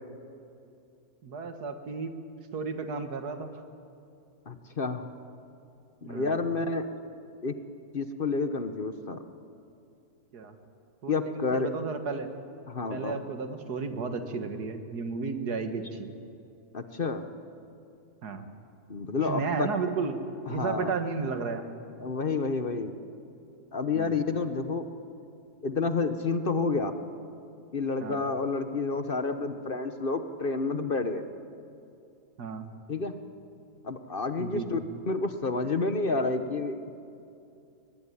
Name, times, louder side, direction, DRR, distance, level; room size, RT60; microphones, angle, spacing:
voice 1, 1.2-2.1 2.5-3.6 6.0-6.4 10.3-10.6 11.0-12.3 12.9-16.1 18.2-18.5 19.2-20.2 20.5-21.7 23.9-24.1 28.0-28.2 32.4-32.7 34.4-34.8, right 4 dB, 90° right, 8 dB, 2.1 m, -33 dB
voice 2, 4.5-5.0 6.1-6.9 7.4-7.6 7.9-9.2 11.1-11.7 12.7-13.2 16.7-17.2 18.9-19.7 20.5-20.9 22.0-22.9 23.7-24.9 25.6-26.9 27.7-31.2 32.9-33.1 33.8-34.8 35.1-37.0, left 4 dB, 40° left, 9 dB, 1.1 m, -29 dB
23.0 x 18.5 x 9.9 m, 2.6 s
omnidirectional pair, 1.6 m